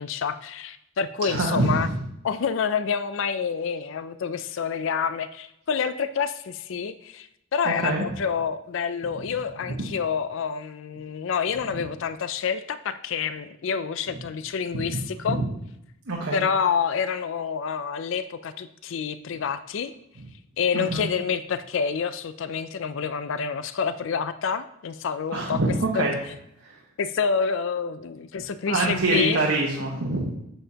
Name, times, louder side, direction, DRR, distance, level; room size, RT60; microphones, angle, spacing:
voice 1, 0.0-1.9 2.2-15.4 16.3-19.9 20.6-25.6 25.9-26.0 27.0-29.4, left 6 dB, 65° left, 12 dB, 0.4 m, -28 dB
voice 2, 1.3-1.9 7.6-8.0 9.8-9.9 14.9-15.0 15.3-15.4 16.1-16.4 20.7-21.1 25.3-26.1 26.6-26.8 28.7-30.4, right 2 dB, 90° right, -2 dB, 1.2 m, -25 dB
8.7 x 6.9 x 2.9 m, 0.79 s
head